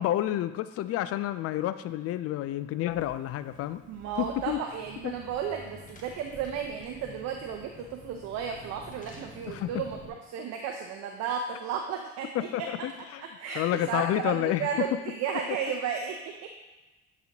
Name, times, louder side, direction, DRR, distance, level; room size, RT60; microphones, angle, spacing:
voice 1, 0.0-3.8 4.2-4.6 5.0-5.1 9.5-9.8 12.3-13.2 13.6-14.9 15.5-15.6, left 13 dB, 50° left, 13 dB, 0.4 m, -29 dB
Car / Engine, 2.9-10.1, left 2 dB, 25° left, 1.3 m, -49 dB
voice 2, 3.9-12.7 13.2-13.6 13.9-16.5, right 7 dB, 60° right, 3 dB, 0.6 m, -34 dB
8.3 x 4.0 x 2.9 m, 1.1 s
hypercardioid pair, 55°, 30 cm